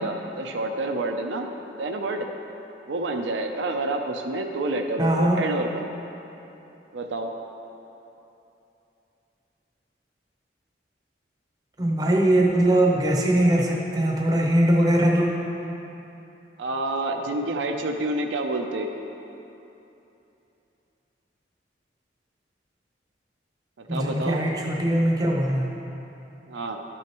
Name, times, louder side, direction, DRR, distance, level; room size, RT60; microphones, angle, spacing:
voice 1, 0.0-1.5 1.8-2.3 2.9-5.9 6.9-7.3 16.6-18.9 23.8-24.5 26.5-26.8, right 2 dB, 75° right, 3 dB, 0.5 m, -28 dB
voice 2, 5.0-5.4 11.8-15.3 23.9-25.7, right 1 dB, 20° right, -1 dB, 0.7 m, -21 dB
12.0 x 6.3 x 3.0 m, 3.0 s
head